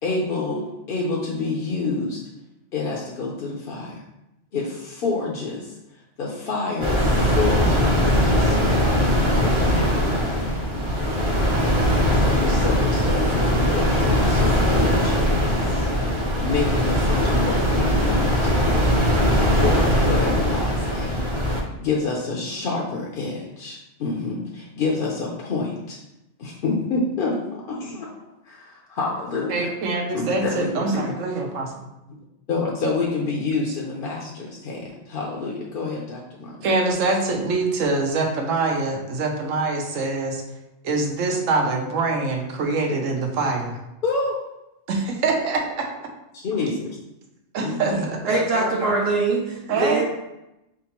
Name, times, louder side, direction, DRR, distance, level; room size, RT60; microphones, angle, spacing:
voice 1, 0.0-2.2 2.7-4.0 4.5-5.8 6.2-8.7 9.7-9.9 10.7-11.1 12.2-15.9 16.4-18.9 19.5-21.3 21.8-26.0 26.4-28.1 28.5-29.7 30.1-31.1 32.5-36.6 44.0-44.4 46.4-46.9 47.6-48.0, left 3 dB, 55° left, -2 dB, 0.7 m, -28 dB
sound 1, 6.8-21.6, equal, 30° right, 0.6 m, -20 dB
voice 2, 29.5-31.7 36.6-40.4 40.8-43.8 44.9-45.9 47.5-49.0 49.7-50.0, right 3 dB, 85° right, 1 dB, 1.1 m, -24 dB
voice 3, 48.2-50.1, right 3 dB, 60° right, -2 dB, 0.8 m, -23 dB
4.2 x 3.6 x 2.9 m, 0.92 s
omnidirectional pair, 1.3 m